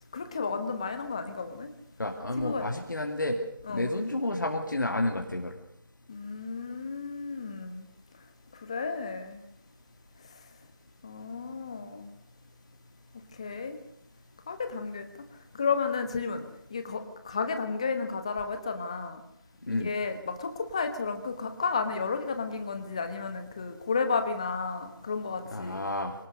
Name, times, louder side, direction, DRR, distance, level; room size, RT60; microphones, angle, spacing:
voice 1, 0.1-1.7 2.4-2.7 3.7-3.9 6.1-7.9 8.6-9.4 11.0-12.1 13.4-13.8 14.5-15.1 15.5-16.4 16.7-19.2 19.7-25.8, left 5 dB, 15° left, 8 dB, 1.2 m, -32 dB
voice 2, 2.0-3.4 3.7-5.5 19.7-19.9 25.5-26.1, left 2 dB, 55° left, 2 dB, 2.7 m, -30 dB
25.0 x 18.5 x 6.5 m, 0.67 s
figure-of-eight pair, 170°, 13 cm